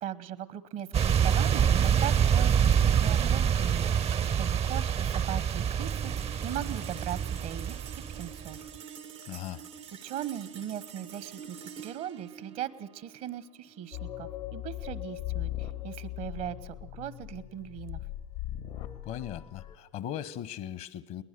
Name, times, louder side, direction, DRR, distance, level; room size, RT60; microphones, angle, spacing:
voice 1, 0.0-4.1 4.4-7.8 8.1-8.7 9.9-18.0, right 10 dB, 65° right, 17 dB, 1.2 m, -39 dB
sound 1, 0.9-8.6, right 8 dB, 40° right, 0.7 m, -26 dB
sound 2, 5.8-16.4, right 7 dB, 90° right, 1.4 m, -48 dB
voice 2, 9.3-9.6 19.0-21.2, left 11 dB, 65° left, 17 dB, 1.1 m, -38 dB
sound 3, 13.9-19.8, left 14 dB, 90° left, 1.9 m, -39 dB
21.5 x 19.5 x 6.8 m, 0.82 s
hypercardioid pair, 70°, 15 cm